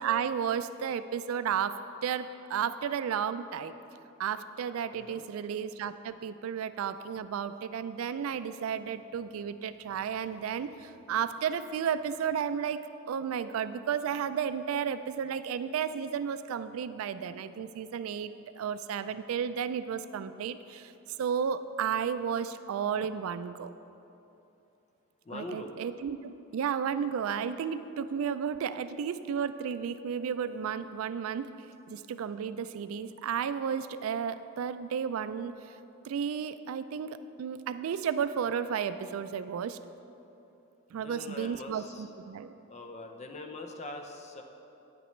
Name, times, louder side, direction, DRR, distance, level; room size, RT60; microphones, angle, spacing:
voice 1, 0.0-3.7 4.2-20.9 21.2-23.7 25.3-35.5 36.0-39.8 40.9-42.5, right 7 dB, 80° right, 13 dB, 0.3 m, -33 dB
voice 2, 4.9-5.2 25.2-25.7 41.0-42.1 42.7-44.4, left 2 dB, 30° left, 4 dB, 0.6 m, -42 dB
9.4 x 8.9 x 3.1 m, 2.9 s
head